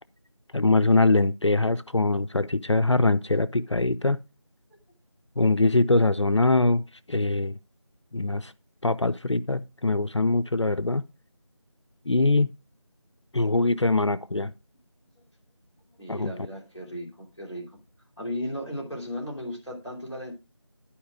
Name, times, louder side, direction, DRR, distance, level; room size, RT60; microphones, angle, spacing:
voice 1, 0.5-4.2 5.4-6.8 7.1-7.6 8.1-8.5 8.8-11.0 12.1-12.5 13.3-14.5 16.1-16.3, left 2 dB, 65° left, 0.5 m, -22 dB
voice 2, 16.0-17.8 18.2-20.3, equal, 5° right, 1.7 m, -35 dB
11.5 x 5.0 x 4.8 m
figure-of-eight pair, 175°, 16 cm